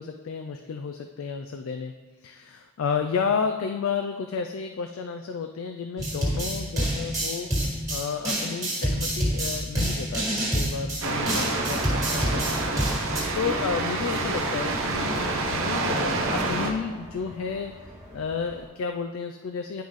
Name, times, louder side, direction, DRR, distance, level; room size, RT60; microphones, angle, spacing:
voice 1, 0.0-1.9 2.2-7.5 7.9-12.5 12.9-17.7 18.1-19.8, left 5 dB, 85° left, 5 dB, 0.4 m, -31 dB
sound 1, 6.0-13.2, right 1 dB, 15° right, 1.7 m, -27 dB
sea-waves, 11.0-16.7, right 2 dB, 75° right, 0.8 m, -27 dB
sound 2, 11.3-18.7, equal, 35° right, 1.7 m, -45 dB
10.5 x 4.0 x 3.1 m, 1.2 s
head